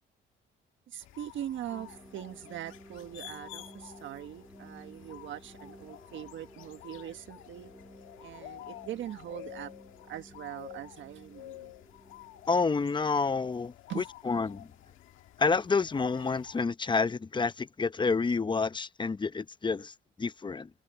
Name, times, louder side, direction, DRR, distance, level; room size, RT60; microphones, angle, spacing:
voice 1, 0.9-7.7 8.2-9.7 10.0-11.7 13.9-14.1, right 12 dB, 75° right, 1.4 m, -41 dB
sound 1, 1.0-16.6, left 15 dB, 85° left, 1.8 m, -50 dB
sound 2, 1.7-13.5, right 1 dB, 5° right, 6.8 m, -55 dB
voice 2, 12.5-14.7 15.4-19.9 20.2-20.7, left 4 dB, 25° left, 0.8 m, -29 dB
cardioid pair, 90°, 20 cm